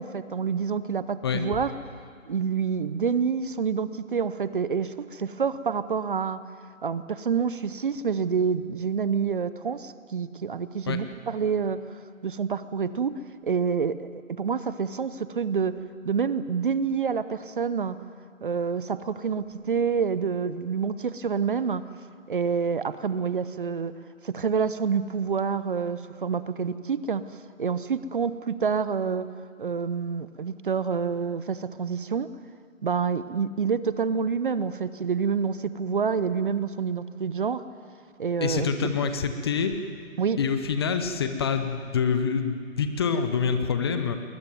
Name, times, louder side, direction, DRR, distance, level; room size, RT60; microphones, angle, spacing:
voice 1, 0.0-1.7 2.3-6.4 6.8-11.8 12.2-15.8 16.0-18.0 18.4-21.8 22.3-23.9 24.2-27.2 27.6-29.3 29.6-32.3 32.8-37.6 38.2-38.9 40.2-40.4, right 6 dB, 40° right, 15 dB, 0.7 m, -27 dB
voice 2, 38.4-39.8 40.4-44.2, left 6 dB, 20° left, 8 dB, 0.8 m, -26 dB
20.5 x 20.0 x 9.3 m, 2.2 s
figure-of-eight pair, 145°, 40 cm